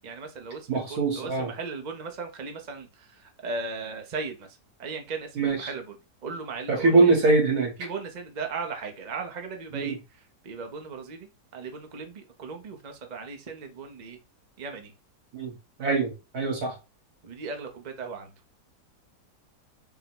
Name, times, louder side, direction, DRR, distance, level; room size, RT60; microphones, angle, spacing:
voice 1, 0.0-4.5 4.8-6.0 6.2-7.1 7.8-10.0 10.4-11.3 11.5-14.2 14.6-14.9 17.2-18.3, right 4 dB, 45° right, 0.6 m, -37 dB
voice 2, 0.7-1.5 5.3-5.7 6.7-7.7 9.7-9.9 15.3-15.5 15.8-16.7, right 3 dB, 65° right, 1.8 m, -23 dB
4.5 x 2.1 x 4.1 m
omnidirectional pair, 1.7 m